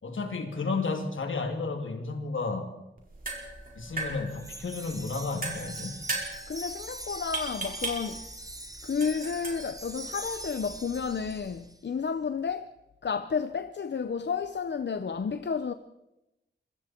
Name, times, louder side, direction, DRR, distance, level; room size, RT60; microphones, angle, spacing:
voice 1, 0.0-2.7 3.8-6.0, left 4 dB, 80° left, 2.9 m, -32 dB
sound 1, 3.0-11.6, right 3 dB, 45° right, 5.1 m, -39 dB
Wind chime, 4.3-11.8, right 2 dB, 20° right, 1.5 m, -43 dB
voice 2, 6.5-8.2 8.8-12.7 13.0-15.7, left 6 dB, 65° left, 0.8 m, -31 dB
26.5 x 23.0 x 4.5 m
wide cardioid pair, 125°, 20 cm